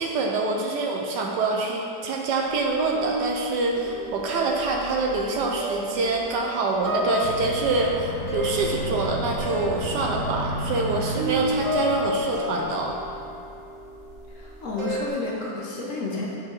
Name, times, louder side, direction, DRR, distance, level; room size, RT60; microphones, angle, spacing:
voice 1, 0.0-13.0, right 3 dB, 70° right, 0 dB, 1.1 m, -25 dB
sound 1, 2.4-15.1, equal, 45° right, 1.2 m, -32 dB
Aircraft, 7.2-13.3, left 1 dB, 85° left, 0.7 m, -33 dB
voice 2, 14.3-16.3, left 2 dB, 55° left, -3 dB, 0.9 m, -31 dB
7.8 x 4.3 x 3.8 m, 2.6 s
omnidirectional pair, 2.1 m